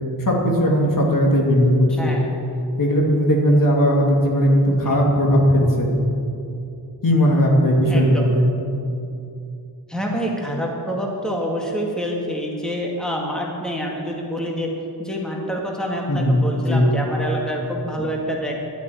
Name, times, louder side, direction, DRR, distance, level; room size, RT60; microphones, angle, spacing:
voice 1, 0.2-2.2 2.8-5.9 7.0-8.5 16.1-16.9, equal, 50° left, -1 dB, 2.7 m, -17 dB
voice 2, 1.9-2.3 4.9-5.0 7.9-8.3 9.9-14.7 15.0-18.6, equal, ahead, -1 dB, 2.2 m, -27 dB
12.0 x 9.4 x 9.4 m, 2.6 s
wide cardioid pair, 95°, 41 cm